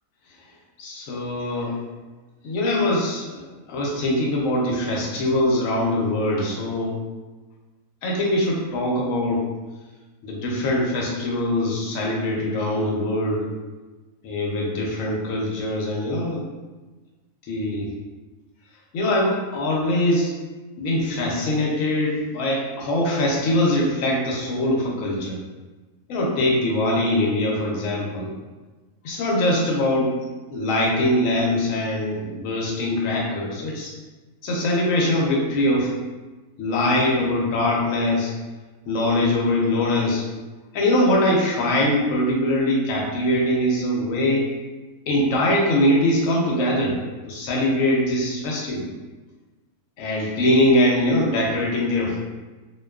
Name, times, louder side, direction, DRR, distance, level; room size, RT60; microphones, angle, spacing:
voice 1, 0.8-1.8 2.4-7.0 8.0-9.4 10.2-13.5 14.2-16.4 17.5-17.9 18.9-20.3 20.8-25.4 26.1-28.3 29.0-30.1 30.5-33.9 34.4-35.9 36.6-38.3 38.9-40.2 40.7-44.5 45.1-47.0 47.3-48.9 50.0-52.2, left 1 dB, 70° left, -2 dB, 0.9 m, -22 dB
2.5 x 2.2 x 2.2 m, 1.2 s
omnidirectional pair, 1.6 m